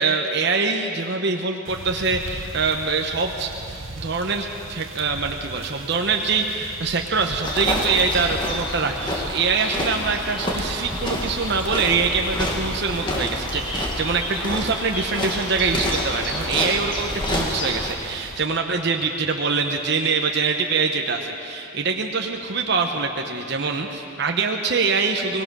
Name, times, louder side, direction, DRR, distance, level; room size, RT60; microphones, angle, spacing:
voice 1, 0.0-25.4, right 4 dB, 55° right, 3 dB, 0.9 m, -24 dB
sound 1, 1.7-18.5, right 3 dB, 70° right, 1.1 m, -40 dB
sound 2, 7.4-17.9, left 1 dB, 20° left, 2.0 m, -28 dB
23.0 x 19.0 x 6.2 m, 2.8 s
head